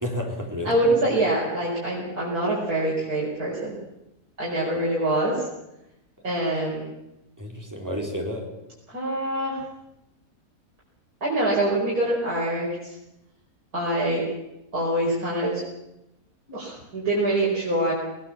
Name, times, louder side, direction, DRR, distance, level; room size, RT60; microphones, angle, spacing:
voice 1, 0.0-1.0 7.4-8.5, left 1 dB, 10° right, 0 dB, 4.1 m, -31 dB
voice 2, 0.6-3.8 4.4-5.5 6.2-6.9 8.9-9.6 11.2-13.0 13.7-14.2 14.7-15.6 16.5-17.9, right 1 dB, 85° right, -6 dB, 5.8 m, -25 dB
20.0 x 19.5 x 7.4 m, 0.90 s
omnidirectional pair, 1.6 m